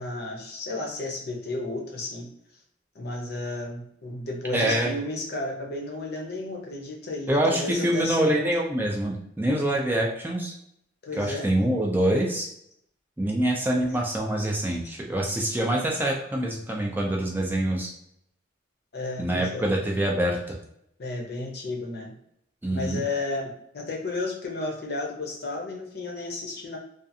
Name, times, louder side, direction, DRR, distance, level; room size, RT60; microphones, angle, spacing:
voice 1, 0.0-2.3 2.9-8.5 11.0-11.5 14.8-14.9 18.9-19.7 21.0-22.1 22.7-26.8, left 2 dB, 55° left, 1 dB, 0.6 m, -33 dB
voice 2, 4.5-5.0 7.3-10.5 11.2-12.5 13.2-17.9 19.2-20.6 22.6-23.0, right 1 dB, 10° right, -1 dB, 0.3 m, -25 dB
2.5 x 2.4 x 2.6 m, 0.74 s
head